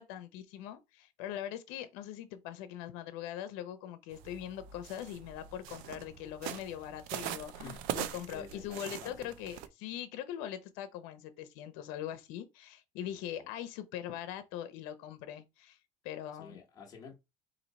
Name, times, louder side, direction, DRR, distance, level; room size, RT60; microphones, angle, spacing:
voice 1, 0.0-15.8 16.0-16.6, left 11 dB, 75° left, 0.7 m, -42 dB
sound 1, 4.1-9.7, right 11 dB, 70° right, 0.6 m, -42 dB
voice 2, 7.5-7.8 8.3-9.4 13.0-13.5 16.3-17.2, left 5 dB, 25° left, 1.0 m, -51 dB
4.4 x 2.7 x 4.0 m
cardioid pair, 170°, 15 cm